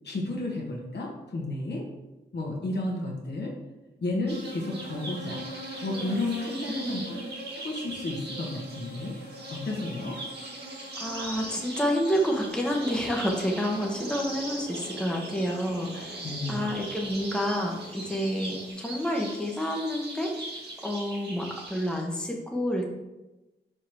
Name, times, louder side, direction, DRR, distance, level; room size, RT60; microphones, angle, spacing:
voice 1, 0.0-1.9 2.3-3.5 4.0-5.4 5.8-7.2 7.5-9.2 9.5-10.2 16.2-16.7, left 2 dB, 65° left, -1 dB, 1.6 m, -32 dB
sound 1, 4.3-22.0, right 1 dB, 60° right, 1.8 m, -40 dB
voice 2, 6.7-7.3 11.0-16.2 16.5-20.4 20.8-22.9, equal, 5° left, 0 dB, 1.1 m, -29 dB
sound 2, 12.5-18.7, equal, 30° right, 1.8 m, -45 dB
5.2 x 4.9 x 4.7 m, 1.0 s
cardioid pair, 75°, 19 cm